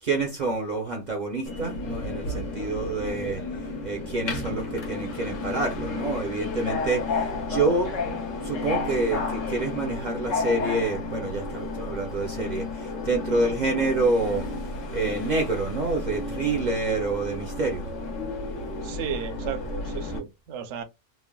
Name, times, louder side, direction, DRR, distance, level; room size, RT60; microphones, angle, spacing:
voice 1, 0.0-14.4 14.9-17.9, right 3 dB, 50° right, 0.6 m, -28 dB
Subway metro underground, 1.5-20.2, left 3 dB, 75° left, 1.1 m, -32 dB
voice 2, 18.8-20.8, right 8 dB, 70° right, 0.9 m, -34 dB
3.2 x 2.1 x 2.2 m
omnidirectional pair, 1.3 m